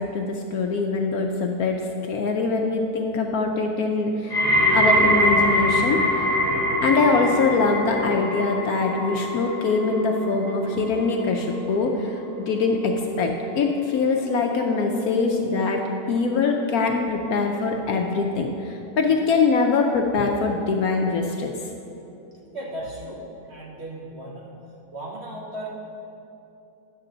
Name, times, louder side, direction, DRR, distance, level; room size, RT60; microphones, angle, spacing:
voice 1, 0.0-6.4 6.8-21.5, left 4 dB, 70° left, 2 dB, 1.0 m, -23 dB
sound 1, 4.3-15.4 15.7-16.3 17.0-17.1, equal, 10° right, 0.9 m, -25 dB
voice 2, 22.5-24.6 24.9-25.7, right 1 dB, 45° right, -3 dB, 1.0 m, -36 dB
10.5 x 6.7 x 3.8 m, 2.8 s
omnidirectional pair, 1.9 m